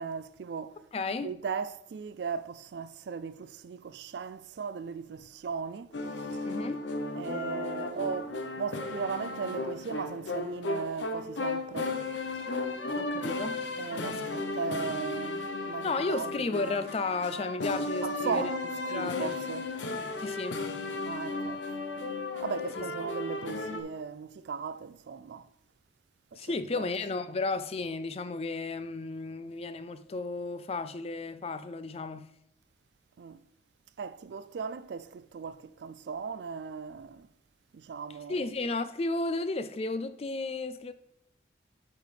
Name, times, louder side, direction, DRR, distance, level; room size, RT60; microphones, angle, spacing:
voice 1, 0.0-0.8 1.2-6.0 6.3-6.4 7.2-11.9 13.8-16.8 18.0-19.7 21.0-21.6 22.4-25.5 26.3-26.9 33.2-33.4 34.0-37.3 37.7-38.5, right 5 dB, 70° right, 0.3 m, -37 dB
voice 2, 0.9-1.3 6.5-6.8 12.9-13.6 14.0-14.1 15.8-18.5 18.9-19.3 20.2-20.6 22.8-22.9 26.3-32.3 38.3-40.9, left 3 dB, 35° left, 0.4 m, -33 dB
sound 1, 5.9-23.8, left 2 dB, 85° left, 0.9 m, -35 dB
8.3 x 6.5 x 3.3 m
head